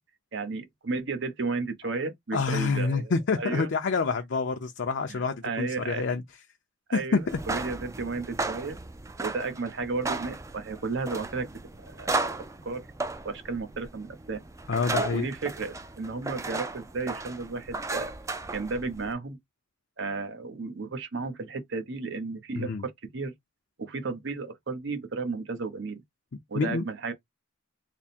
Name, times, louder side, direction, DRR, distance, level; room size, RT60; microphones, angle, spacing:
voice 1, 0.3-3.7 5.1-6.1 6.9-8.8 9.2-12.2 12.6-12.9 13.2-14.4 14.9-18.1 18.5-19.4 20.0-23.3 23.8-26.0 26.5-27.1, right 4 dB, 60° right, 0.8 m, -33 dB
voice 2, 2.3-6.2 6.9-7.4 14.7-15.3 22.6-22.8 26.6-26.8, left 4 dB, 60° left, 0.5 m, -27 dB
sound 1, 7.2-19.1, right 3 dB, 15° right, 0.4 m, -35 dB
3.5 x 2.0 x 4.2 m
head